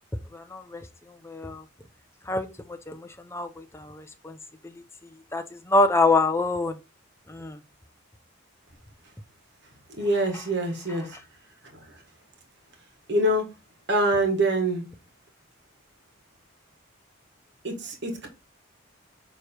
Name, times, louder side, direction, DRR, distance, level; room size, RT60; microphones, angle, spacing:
voice 1, 0.3-0.8 1.1-1.6 2.3-4.4 4.6-4.7 5.3-6.8 7.3-7.6 10.9-11.0, left 3 dB, 10° left, 0.6 m, -26 dB
voice 2, 10.0-11.2 13.1-13.5 13.9-14.8 17.6-18.3, right 1 dB, 55° right, 1.5 m, -25 dB
6.7 x 3.2 x 4.4 m
head